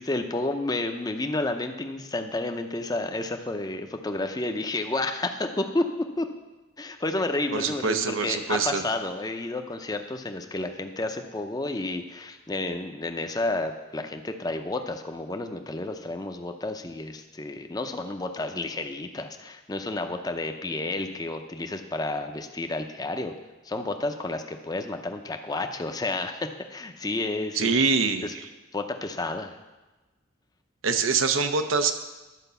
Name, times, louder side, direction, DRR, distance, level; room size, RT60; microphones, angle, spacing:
voice 1, 0.0-5.8 6.2-6.3 6.8-23.3 23.6-27.7 28.2-28.3 28.7-29.6, left 2 dB, 20° left, 6 dB, 0.6 m, -31 dB
voice 2, 7.5-8.8 27.5-28.5 30.8-31.9, right 5 dB, 80° right, 8 dB, 0.8 m, -24 dB
11.0 x 5.1 x 6.8 m, 1.1 s
head